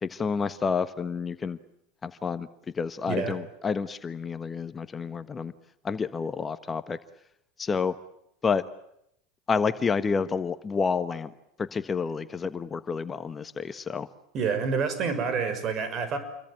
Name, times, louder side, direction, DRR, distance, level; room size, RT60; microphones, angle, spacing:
voice 1, 0.0-1.6 2.0-2.5 2.7-5.5 5.8-7.0 7.6-7.9 8.4-8.6 9.5-11.3 11.6-14.1, left 5 dB, 25° left, 12 dB, 1.3 m, -29 dB
voice 2, 14.3-16.2, right 5 dB, 45° right, 11 dB, 6.3 m, -28 dB
28.0 x 23.0 x 9.0 m, 0.76 s
hypercardioid pair, 85°, 0 cm